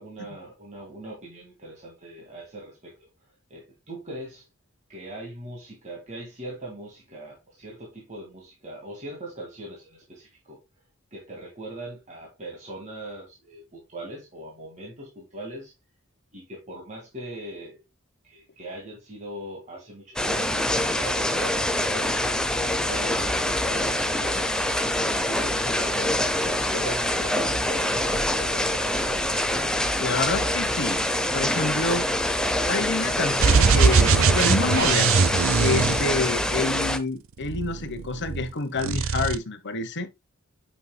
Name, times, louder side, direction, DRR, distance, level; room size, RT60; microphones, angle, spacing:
voice 1, 0.0-4.5 4.9-10.6 11.1-15.7 16.3-17.8 18.2-22.4 22.9-24.5 25.0-29.2, right 1 dB, 35° right, 1.9 m, -40 dB
sound 1, 20.2-37.0, left 1 dB, 5° left, 0.6 m, -25 dB
voice 2, 30.0-31.0 31.3-32.1 32.7-35.3 35.6-40.1, left 3 dB, 55° left, 1.0 m, -28 dB
sound 2, 33.4-36.7 37.4-38.5 38.8-39.4, right 5 dB, 65° right, 0.5 m, -21 dB
8.4 x 5.7 x 2.2 m
head